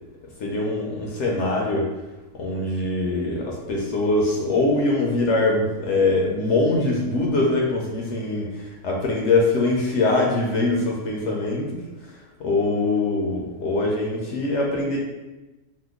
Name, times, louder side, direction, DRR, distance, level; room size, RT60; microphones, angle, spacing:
voice 1, 0.4-1.9 2.4-8.4 8.8-11.6 12.4-15.0, left 2 dB, 65° left, -2 dB, 0.8 m, -22 dB
2.9 x 2.1 x 3.4 m, 1.1 s
omnidirectional pair, 1.4 m